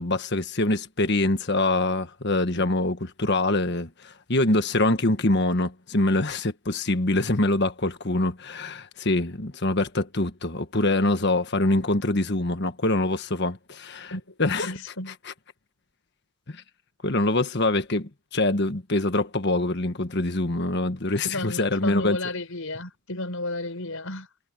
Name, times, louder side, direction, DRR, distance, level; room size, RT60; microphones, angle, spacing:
voice 1, 0.0-14.1 14.4-14.7 16.5-16.6 17.0-22.2, left 2 dB, 55° left, 1.5 m, -24 dB
voice 2, 14.6-15.2 21.2-24.3, left 2 dB, 75° left, 5.3 m, -33 dB
head